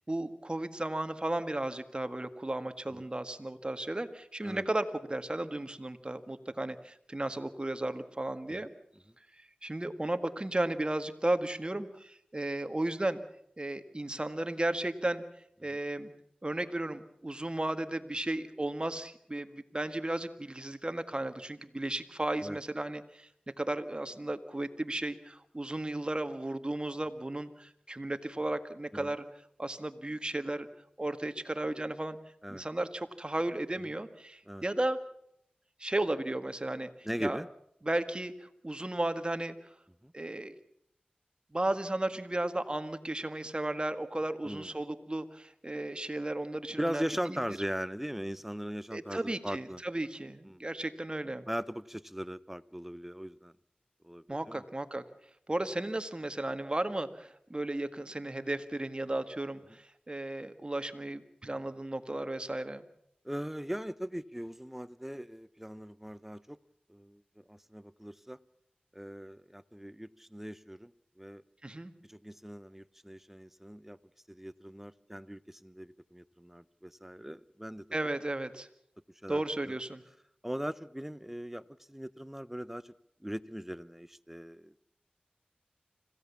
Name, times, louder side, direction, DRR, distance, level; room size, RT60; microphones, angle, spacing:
voice 1, 0.1-8.7 9.6-13.2 13.6-15.2 15.6-16.1 16.4-23.3 23.6-29.3 29.6-30.7 31.0-32.2 32.5-35.0 35.8-37.4 37.8-39.6 40.1-40.5 41.5-47.4 48.9-51.5 54.3-55.0 55.5-62.8 71.6-71.9 77.9-78.7 79.3-80.0, right 1 dB, 30° right, 9 dB, 1.8 m, -34 dB
voice 2, 37.0-37.5 40.0-40.1 44.4-44.7 46.8-49.8 50.5-50.6 51.5-53.5 54.0-54.6 63.2-66.6 66.9-68.4 68.9-70.9 71.2-71.4 72.0-74.0 74.3-77.8 79.2-79.7 80.4-82.9 83.2-84.8, equal, 10° right, 17 dB, 0.8 m, -39 dB
26.0 x 16.5 x 7.2 m, 0.74 s
cardioid pair, 40°, 3 cm